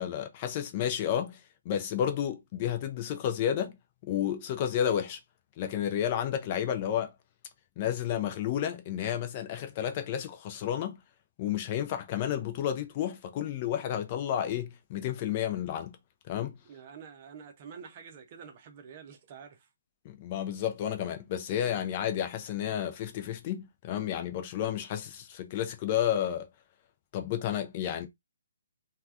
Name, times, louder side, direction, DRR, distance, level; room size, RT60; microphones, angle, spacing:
voice 1, 0.0-1.4 1.7-3.8 4.1-5.2 5.6-7.1 7.8-11.0 11.4-16.0 16.3-16.5 20.0-26.5 27.1-28.1, left 10 dB, 30° left, 0.5 m, -31 dB
voice 2, 16.6-19.7, right 6 dB, 30° right, 0.6 m, -48 dB
3.2 x 2.2 x 2.5 m
figure-of-eight pair, 135°, 0 cm